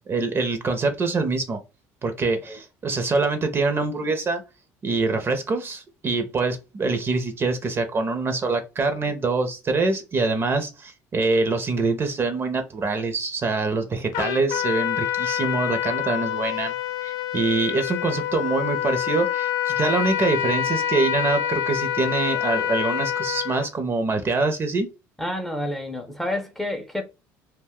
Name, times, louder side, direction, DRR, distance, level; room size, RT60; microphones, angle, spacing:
voice 1, 0.1-1.6 2.0-4.4 4.8-16.7 17.0-24.9, right 3 dB, 35° right, 0.7 m, -24 dB
Trumpet, 14.1-23.7, left 10 dB, 75° left, 0.3 m, -26 dB
voice 2, 25.2-27.0, left 1 dB, 5° left, 0.6 m, -29 dB
2.4 x 2.2 x 3.6 m
supercardioid pair, 95°, 7 cm